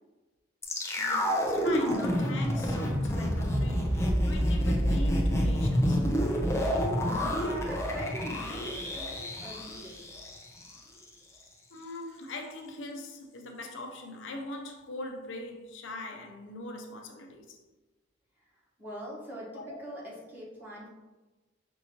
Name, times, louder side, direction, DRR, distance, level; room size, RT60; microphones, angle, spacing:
sound 1, 0.6-10.8 11.0-11.1, equal, 15° left, 0.5 m, -28 dB
voice 1, 1.0-6.1 11.7-17.6 19.5-19.8, left 1 dB, 75° left, 0.6 m, -41 dB
voice 2, 7.4-10.0 18.8-19.5 19.8-20.9, equal, 10° right, 1.2 m, -42 dB
5.3 x 2.9 x 2.8 m
head